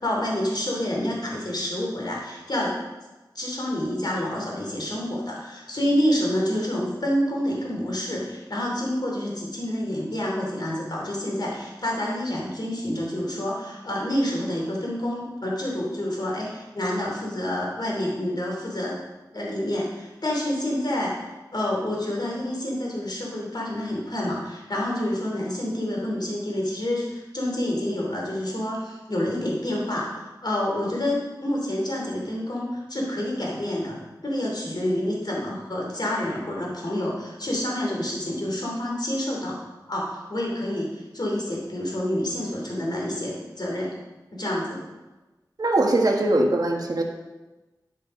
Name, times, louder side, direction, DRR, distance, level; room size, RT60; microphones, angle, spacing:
voice 1, 0.0-2.8 3.3-19.0 19.3-21.1 21.5-39.5 39.9-43.9 44.3-44.8, left 1 dB, 65° left, -2 dB, 2.8 m, -28 dB
voice 2, 45.6-47.0, right 2 dB, 55° right, 1 dB, 1.5 m, -21 dB
11.0 x 5.7 x 5.2 m, 1.1 s
wide cardioid pair, 55°, 8 cm